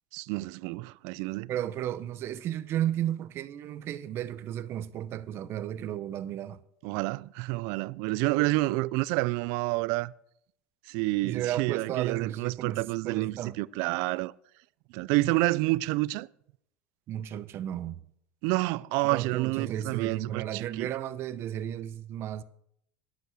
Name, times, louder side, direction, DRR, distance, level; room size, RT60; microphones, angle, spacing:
voice 1, 0.1-1.5 6.8-10.1 10.9-14.3 14.9-16.3 18.4-20.9, right 21 dB, 70° right, 0.4 m, -29 dB
voice 2, 1.5-6.6 11.2-13.6 17.1-18.1 19.0-22.4, right 11 dB, 50° right, 0.8 m, -34 dB
11.0 x 8.2 x 6.4 m
supercardioid pair, 105°, 5 cm